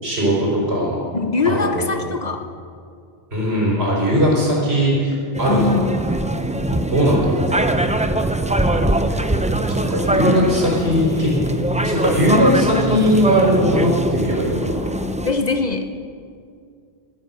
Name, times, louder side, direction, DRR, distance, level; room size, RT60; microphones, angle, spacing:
voice 1, 0.0-1.0 1.4-2.0 3.3-6.0 6.9-7.6 9.1-9.2 9.7-11.3 11.8-14.8, equal, 80° right, -3 dB, 4.5 m, -19 dB
voice 2, 1.1-2.4 5.5-5.9 15.3-15.9, left 4 dB, 45° left, 6 dB, 0.9 m, -22 dB
sound 1, 5.3-15.3, right 1 dB, 10° right, 0.4 m, -22 dB
20.0 x 9.6 x 5.5 m, 2.2 s
omnidirectional pair, 1.1 m